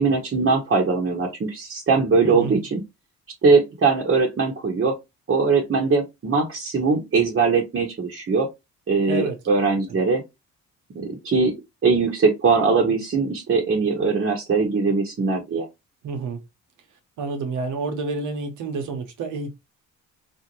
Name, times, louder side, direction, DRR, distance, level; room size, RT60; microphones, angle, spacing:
voice 1, 0.0-2.8 3.4-4.9 5.3-8.5 8.9-10.2 10.9-11.5 11.8-15.7, right 4 dB, 40° right, 1.2 m, -21 dB
voice 2, 2.2-2.6 9.1-9.4 9.9-10.0 16.0-16.4 17.2-19.5, right 4 dB, 80° right, 1.1 m, -29 dB
4.2 x 2.7 x 3.0 m
cardioid pair, 90°, 30 cm